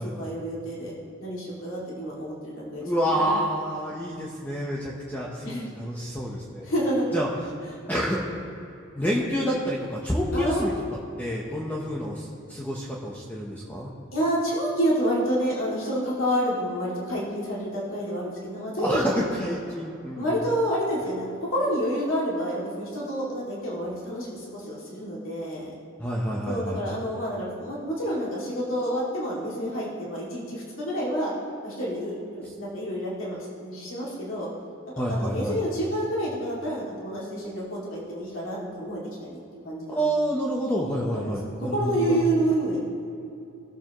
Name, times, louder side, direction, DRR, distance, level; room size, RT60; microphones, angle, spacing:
voice 1, 0.0-2.9 3.1-3.4 5.4-5.7 6.6-7.1 10.3-10.8 14.1-19.3 20.1-25.7 26.5-31.3 31.6-34.5 35.1-40.0 41.1-41.3 41.7-42.8, equal, 85° left, -6 dB, 2.4 m, -29 dB
voice 2, 2.8-6.7 7.1-7.3 7.9-8.2 9.0-10.7 11.2-13.9 18.8-20.4 26.0-26.8 32.4-32.5 35.0-35.6 39.9-42.2, equal, 10° left, -4 dB, 0.9 m, -28 dB
18.5 x 7.1 x 3.0 m, 2.6 s
head